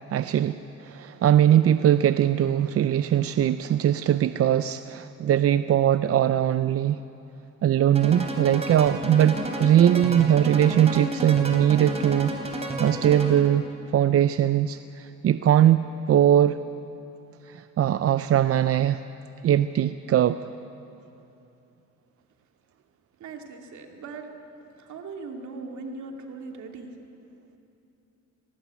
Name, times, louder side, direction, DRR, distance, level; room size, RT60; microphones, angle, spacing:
voice 1, 0.1-7.0 7.6-12.3 12.8-13.6 13.9-16.6 17.5-19.0 19.4-20.4, right 10 dB, 50° right, 12 dB, 0.5 m, -21 dB
sound 1, 7.9-13.6, right 1 dB, 20° right, 3.4 m, -31 dB
voice 2, 23.2-24.2 24.8-26.9, right 4 dB, 70° right, 2 dB, 2.7 m, -39 dB
19.0 x 18.0 x 8.3 m, 2.9 s
cardioid pair, 90°, 30 cm